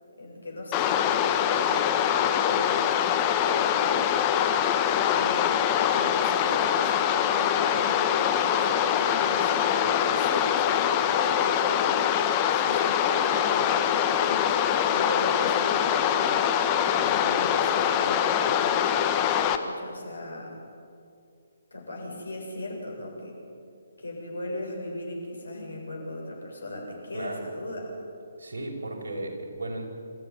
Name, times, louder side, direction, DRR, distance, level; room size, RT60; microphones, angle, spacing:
voice 1, 0.2-4.3 4.9-5.5 5.9-11.9 12.5-16.7 17.0-18.8 19.6-20.6 21.7-23.4 24.0-27.9, left 1 dB, 70° left, 0 dB, 7.8 m, -38 dB
sound 1, 0.7-19.6, left 9 dB, 20° left, 1.3 m, -24 dB
voice 2, 27.1-27.5 28.4-29.9, right 2 dB, 60° right, 1 dB, 5.4 m, -35 dB
27.0 x 14.5 x 9.8 m, 2.5 s
figure-of-eight pair, 135°, 0 cm